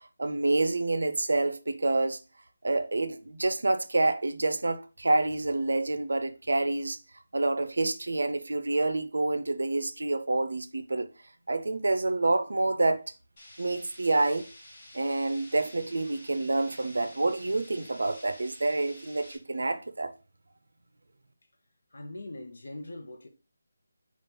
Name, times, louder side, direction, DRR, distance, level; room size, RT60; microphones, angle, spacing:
voice 1, 0.2-2.2 2.6-7.0 7.3-11.1 11.5-13.0 13.6-14.5 14.9-20.1, right 2 dB, 80° right, 0.4 m, -27 dB
sound 1, 13.4-19.4, left 1 dB, 20° left, 0.9 m, -50 dB
voice 2, 21.9-23.3, left 1 dB, 60° left, 0.7 m, -41 dB
4.2 x 2.3 x 3.8 m
figure-of-eight pair, 180°, 0 cm